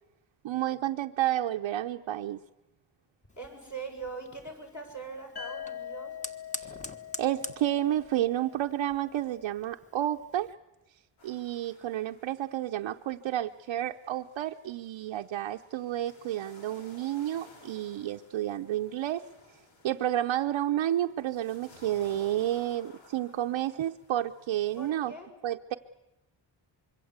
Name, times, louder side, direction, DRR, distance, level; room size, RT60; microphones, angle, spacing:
voice 1, 0.4-2.4 6.6-6.7 7.2-10.5 11.2-19.2 19.8-25.1 25.4-25.7, right 12 dB, 90° right, 3 dB, 0.8 m, -30 dB
voice 2, 3.3-6.1 24.8-25.3, right 4 dB, 40° left, 1 dB, 7.2 m, -41 dB
Fire, 3.3-10.5, left 1 dB, 15° left, 1.5 m, -46 dB
sound 1, 5.4-9.2, left 9 dB, 55° left, 2.0 m, -43 dB
sound 2, 11.2-24.9, left 2 dB, 80° left, 5.0 m, -57 dB
25.5 x 23.5 x 8.1 m, 0.94 s
wide cardioid pair, 130°, 45 cm